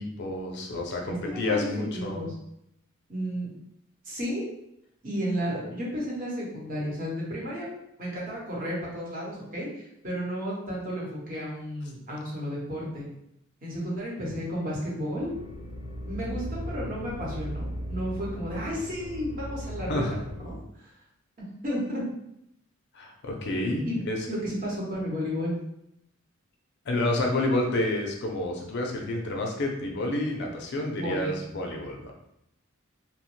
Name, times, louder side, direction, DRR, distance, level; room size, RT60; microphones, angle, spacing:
voice 1, 0.0-2.2 19.9-20.1 22.9-24.2 26.9-32.1, left 2 dB, 55° left, 1 dB, 0.5 m, -29 dB
voice 2, 1.1-2.3 3.1-3.5 4.0-4.5 5.0-7.7 8.0-13.0 13.6-15.3 16.1-20.0 20.4-20.9 21.6-22.0 23.8-24.0 24.3-25.5 31.0-31.4, equal, 40° right, -5 dB, 0.9 m, -32 dB
sound 1, 15.2-20.5, equal, 15° right, 0.8 m, -37 dB
2.9 x 2.1 x 3.0 m, 0.80 s
head